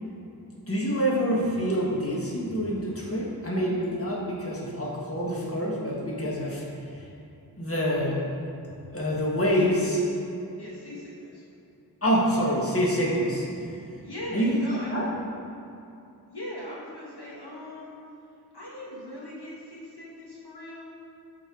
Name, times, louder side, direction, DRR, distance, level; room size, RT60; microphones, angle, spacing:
voice 1, 0.7-6.6 7.6-8.3 8.9-10.0 12.0-13.5 14.3-14.6 14.9-15.1, equal, 35° left, -4 dB, 1.7 m, -26 dB
voice 2, 9.5-9.9 10.6-11.5 14.0-14.9 16.3-17.9 18.5-20.9, left 1 dB, 85° left, -6 dB, 1.8 m, -40 dB
12.5 x 4.5 x 4.8 m, 2.7 s
wide cardioid pair, 45°, 38 cm